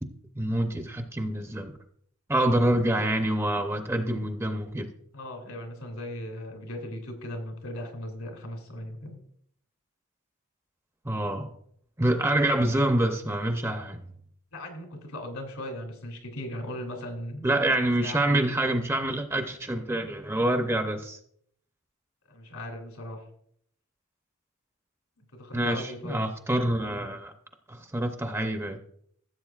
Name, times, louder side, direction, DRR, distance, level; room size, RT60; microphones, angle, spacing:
voice 1, 0.4-1.8 2.3-4.9 11.0-11.5 12.0-14.0 17.4-21.2 25.5-27.3 27.7-28.8, right 1 dB, 10° right, 6 dB, 0.6 m, -26 dB
voice 2, 5.1-9.2 14.5-17.5 18.0-18.3 22.3-23.2 25.3-26.3, left 1 dB, 80° left, 3 dB, 2.8 m, -38 dB
15.0 x 7.8 x 2.4 m, 0.66 s
head